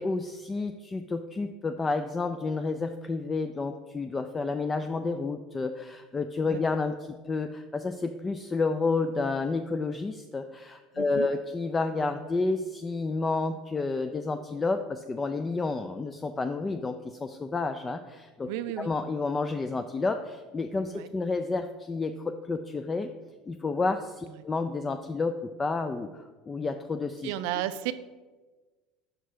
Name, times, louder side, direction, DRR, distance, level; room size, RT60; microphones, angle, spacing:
voice 1, 0.0-18.5 18.8-23.1 23.5-27.3, left 3 dB, 25° left, 7 dB, 0.3 m, -30 dB
voice 2, 10.9-11.3 18.5-18.9 20.9-21.1 27.2-27.9, right 14 dB, 75° right, 13 dB, 0.3 m, -33 dB
5.1 x 4.6 x 5.6 m, 1.3 s
supercardioid pair, 90°, 0 cm